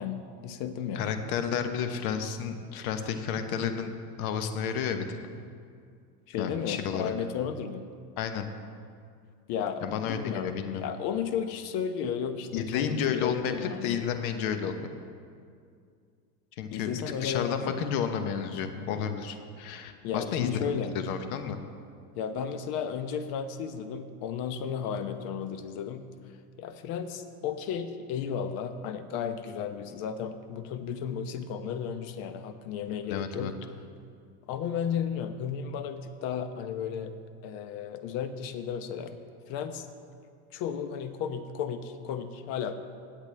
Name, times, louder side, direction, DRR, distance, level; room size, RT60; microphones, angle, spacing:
voice 1, 0.0-1.1 6.3-7.8 9.5-10.6 10.8-14.0 16.7-17.7 20.0-20.9 22.2-26.0 26.6-33.5 34.5-37.1 37.4-39.2 39.5-39.9 40.5-42.7, left 7 dB, 55° left, 9 dB, 0.9 m, -34 dB
voice 2, 0.9-3.9 4.2-5.1 6.4-7.1 8.2-8.5 9.8-10.8 12.5-14.9 16.6-20.6 20.9-21.6 33.1-33.5, left 7 dB, 75° left, 8 dB, 1.1 m, -31 dB
17.0 x 8.1 x 3.4 m, 2.3 s
supercardioid pair, 135°, 43 cm